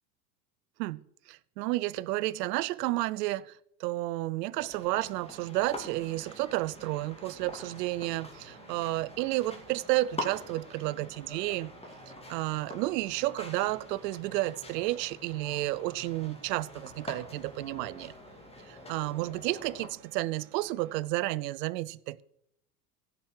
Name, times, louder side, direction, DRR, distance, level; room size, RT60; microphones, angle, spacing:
voice 1, 1.3-11.7 12.3-18.1 18.7-22.2, right 18 dB, 75° right, 0.7 m, -31 dB
sound 1, 4.6-19.9, left 1 dB, 10° left, 2.6 m, -45 dB
sound 2, 5.3-21.0, right 7 dB, 50° right, 2.3 m, -57 dB
15.5 x 6.1 x 6.6 m
hypercardioid pair, 90°, 49 cm